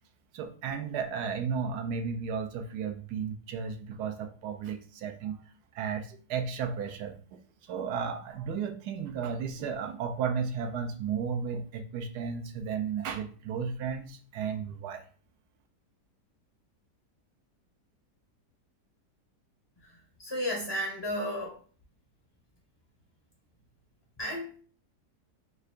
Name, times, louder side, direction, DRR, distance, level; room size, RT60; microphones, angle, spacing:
voice 1, 0.3-5.4 5.7-7.4 7.7-15.0, right 6 dB, 75° right, 7 dB, 1.1 m, -34 dB
voice 2, 20.2-21.6 24.2-24.5, equal, 25° left, -1 dB, 0.5 m, -32 dB
4.7 x 2.5 x 3.2 m, 0.41 s
omnidirectional pair, 1.8 m